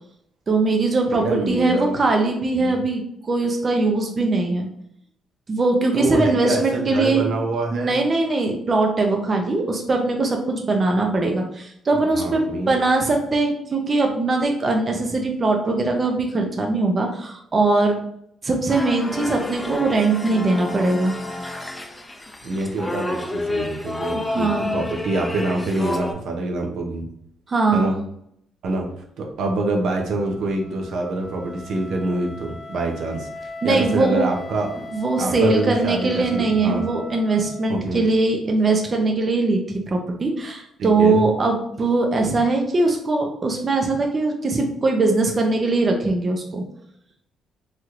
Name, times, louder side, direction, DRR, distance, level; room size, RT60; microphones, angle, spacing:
voice 1, 0.5-4.7 5.5-7.2 7.7-18.0 18.4-21.1 24.1-24.7 27.5-27.9 33.6-34.3 34.9-46.6, right 3 dB, 35° right, 2 dB, 0.5 m, -21 dB
voice 2, 1.1-2.0 2.6-2.7 5.9-8.0 11.9-12.8 22.4-27.0 27.7-28.0 28.6-28.9 29.2-33.3 33.6-34.7 35.2-36.8 37.7-38.0 40.8-41.2, right 2 dB, 75° right, 1 dB, 0.6 m, -25 dB
sound 1, 18.7-26.1, left 2 dB, 15° left, 0.5 m, -30 dB
Wind instrument woodwind instrument, 30.0-38.0, left 3 dB, 45° left, 1.0 m, -39 dB
3.1 x 2.9 x 2.4 m, 0.71 s
cardioid pair, 90°, 0 cm